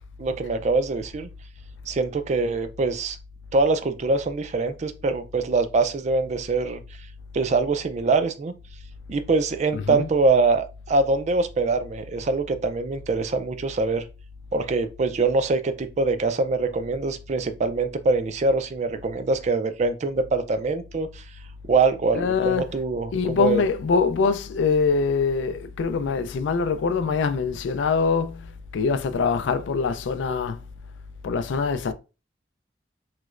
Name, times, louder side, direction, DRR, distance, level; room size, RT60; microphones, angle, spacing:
voice 1, 0.2-1.3 1.9-3.2 3.5-6.8 7.3-8.5 9.1-14.0 14.5-21.2 21.7-23.6, right 3 dB, 40° right, 0.3 m, -24 dB
voice 2, 9.7-10.2 22.1-22.7 23.1-30.6 31.2-31.9, left 5 dB, 80° left, 0.4 m, -24 dB
3.0 x 3.0 x 2.4 m
head